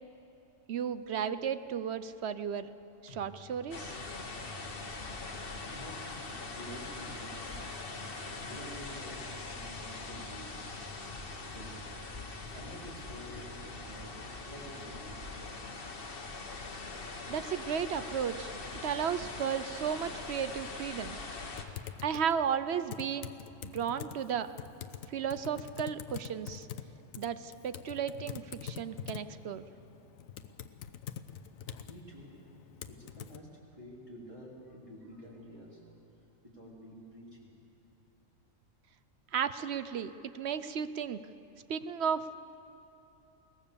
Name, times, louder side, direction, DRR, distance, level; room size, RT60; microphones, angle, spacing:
voice 1, 0.7-2.7 3.0-3.9 17.3-18.5 18.8-21.2 22.0-23.3 23.6-24.5 25.1-26.7 27.2-29.6 39.3-41.2 41.7-42.3, right 8 dB, 60° right, 13 dB, 0.8 m, -34 dB
sound 1, 3.1-13.8, left 1 dB, 65° left, 2.1 m, -54 dB
sound 2, 3.7-21.6, left 3 dB, 45° left, 1.5 m, -42 dB
voice 2, 5.7-7.7 8.5-9.2 9.5-10.7 11.5-11.9 12.5-15.4 25.0-25.2 28.7-29.1 31.8-32.3 32.9-35.8 36.4-37.5, equal, 25° right, -6 dB, 3.5 m, -49 dB
Typing, 21.6-33.4, left 8 dB, 90° left, 1.2 m, -45 dB
21.5 x 18.5 x 7.0 m, 2.9 s
omnidirectional pair, 1.4 m